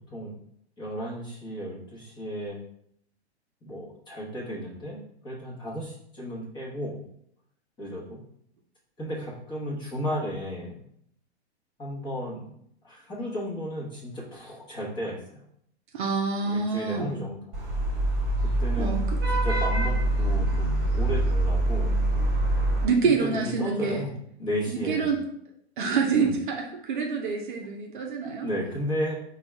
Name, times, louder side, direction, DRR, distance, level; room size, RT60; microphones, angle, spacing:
voice 1, 0.8-2.6 3.6-7.0 7.8-8.2 9.0-10.8 11.8-12.5 12.8-15.4 16.5-17.4 18.6-19.0 19.3-21.9 23.2-24.1 24.4-25.1 26.1-26.4 28.4-29.1, equal, 15° left, -5 dB, 1.0 m, -33 dB
voice 2, 15.9-17.1 18.8-19.2 22.8-24.0 24.7-25.2 25.8-28.5, right 5 dB, 50° right, 2 dB, 0.7 m, -27 dB
Vehicle horn car horn honking / Traffic noise roadway noise, 17.5-22.8, right 1 dB, 25° right, 1.4 m, -24 dB
4.0 x 2.4 x 3.3 m, 0.70 s
figure-of-eight pair, 115°, 33 cm